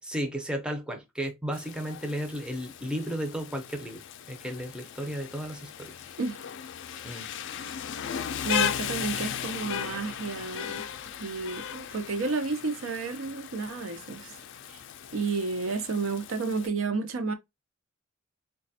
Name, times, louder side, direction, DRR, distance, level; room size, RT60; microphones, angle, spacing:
voice 1, 0.0-6.1 7.0-7.3, equal, 5° right, 0.5 m, -34 dB
Rain, 1.5-16.7, left 9 dB, 60° left, 0.4 m, -37 dB
voice 2, 8.4-10.9 11.2-14.3 14.7-14.8 15.1-17.3, right 4 dB, 70° right, 0.5 m, -31 dB
4.0 x 2.3 x 2.6 m
head